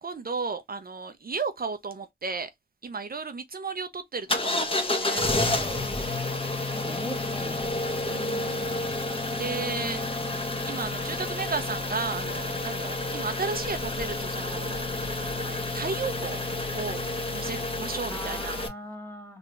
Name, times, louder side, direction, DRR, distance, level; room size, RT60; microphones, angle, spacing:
voice 1, 0.0-2.5 2.8-5.2 8.1-8.9 9.4-10.0 10.7-16.4 16.7-17.0 17.3-18.6, right 4 dB, 55° right, 0.7 m, -34 dB
sound 1, 4.3-18.7, left 2 dB, 30° left, 1.1 m, -30 dB
voice 2, 6.7-7.7 18.1-19.4, equal, 15° left, 1.9 m, -40 dB
3.9 x 2.5 x 3.2 m
cardioid pair, 55°, 19 cm